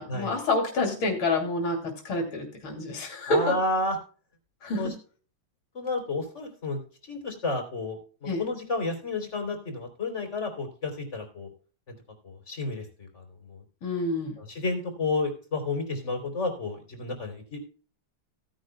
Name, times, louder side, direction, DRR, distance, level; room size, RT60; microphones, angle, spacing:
voice 1, 0.0-3.6 4.6-4.9 8.3-8.4 13.8-14.3, left 2 dB, 80° left, 2 dB, 3.6 m, -28 dB
voice 2, 3.3-4.0 4.8-4.9 5.7-11.5 11.9-12.0 12.2-13.6 14.4-17.6, left 2 dB, 35° left, 4 dB, 3.7 m, -31 dB
16.5 x 10.5 x 2.2 m, 0.39 s
omnidirectional pair, 2.3 m